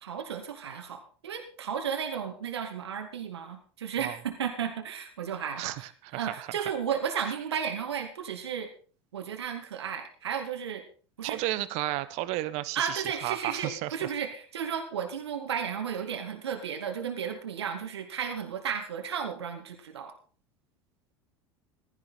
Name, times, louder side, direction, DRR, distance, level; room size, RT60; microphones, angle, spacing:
voice 1, 0.0-8.7 9.1-10.8 11.2-11.4 12.7-20.1, right 7 dB, 75° right, 4 dB, 2.4 m, -34 dB
voice 2, 5.6-6.5 11.2-14.1, right 17 dB, 50° right, 14 dB, 1.3 m, -33 dB
15.5 x 14.0 x 4.2 m, 0.40 s
figure-of-eight pair, 75°, 14 cm